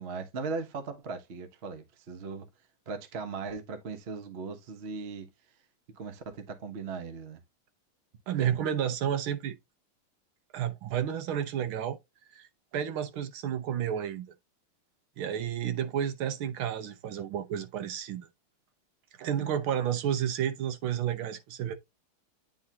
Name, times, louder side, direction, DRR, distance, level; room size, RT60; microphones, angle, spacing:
voice 1, 0.0-2.5 2.9-5.3 6.0-7.4 8.4-8.6, right 4 dB, 45° right, 0.8 m, -38 dB
voice 2, 8.3-9.6 10.5-12.0 12.3-14.3 15.2-18.3 19.2-21.7, right 9 dB, 70° right, 1.7 m, -31 dB
9.6 x 3.7 x 2.8 m
omnidirectional pair, 2.4 m